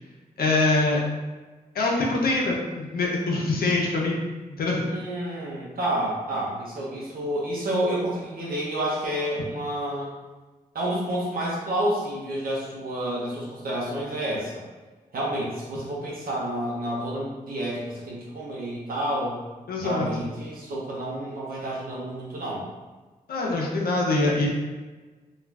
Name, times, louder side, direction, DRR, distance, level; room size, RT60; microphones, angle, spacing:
voice 1, 0.4-1.0 1.7-4.2 4.6-5.0 19.7-20.2 23.3-24.5, left 2 dB, 75° left, -2 dB, 0.6 m, -24 dB
voice 2, 4.9-10.1 10.7-14.5 15.1-19.4 19.8-22.6, right 1 dB, 70° right, -6 dB, 0.7 m, -29 dB
2.4 x 2.3 x 3.2 m, 1.3 s
cardioid pair, 45°, 16 cm